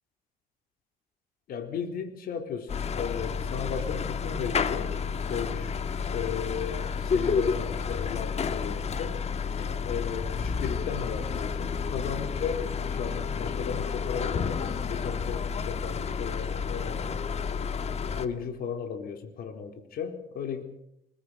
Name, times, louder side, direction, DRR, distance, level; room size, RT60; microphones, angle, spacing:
voice 1, 1.5-4.9 5.3-5.7 6.1-9.2 9.6-17.2 18.1-20.6, left 7 dB, 60° left, 5 dB, 4.1 m, -35 dB
sound 1, 2.7-18.3, left 6 dB, 40° left, 1.6 m, -30 dB
25.0 x 22.0 x 5.8 m, 0.77 s
cardioid pair, 110°, 17 cm